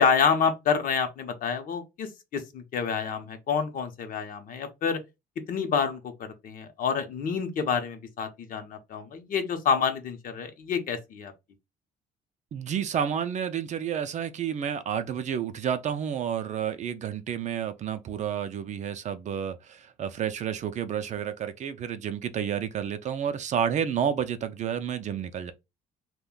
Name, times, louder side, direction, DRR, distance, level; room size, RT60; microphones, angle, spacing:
voice 1, 0.0-5.0 5.5-11.3, left 6 dB, 55° left, 0.7 m, -28 dB
voice 2, 12.5-25.5, right 8 dB, 45° right, 0.4 m, -30 dB
2.4 x 2.1 x 3.7 m
cardioid pair, 110°, 17 cm